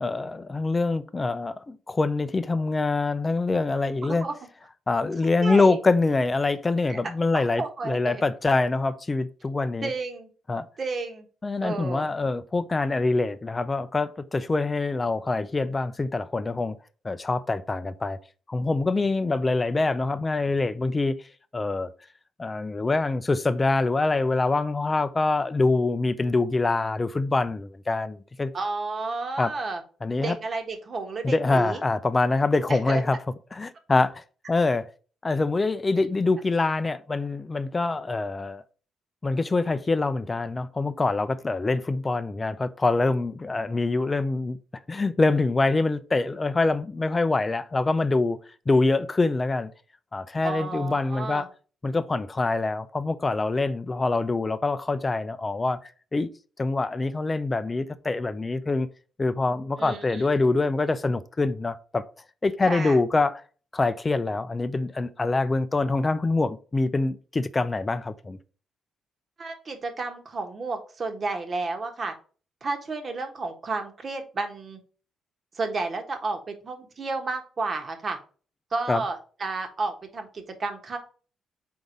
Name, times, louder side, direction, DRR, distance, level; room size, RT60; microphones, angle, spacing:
voice 1, 0.0-4.3 4.9-9.9 10.5-10.7 11.4-16.8 17.0-18.2 18.5-21.2 21.5-21.9 22.4-28.5 29.4-29.5 30.0-30.4 31.2-33.2 33.5-34.9 35.2-38.6 39.2-44.6 44.9-48.4 48.7-49.7 50.1-51.5 51.8-55.8 56.1-56.3 56.6-58.9 59.2-62.0 62.4-63.4 63.7-68.4 78.9-79.0, left 3 dB, 25° left, 0.5 m, -25 dB
voice 2, 5.4-5.8 6.9-7.0 7.3-8.2 9.8-10.3 10.8-11.3 11.6-12.1 28.5-29.8 30.2-31.8 32.7-33.0 50.4-51.5 59.8-60.3 62.6-63.0 69.4-72.1 72.6-74.8 75.5-78.2 78.7-81.0, right 3 dB, 40° right, 1.4 m, -31 dB
4.7 x 3.9 x 5.2 m
cardioid pair, 90°, 0 cm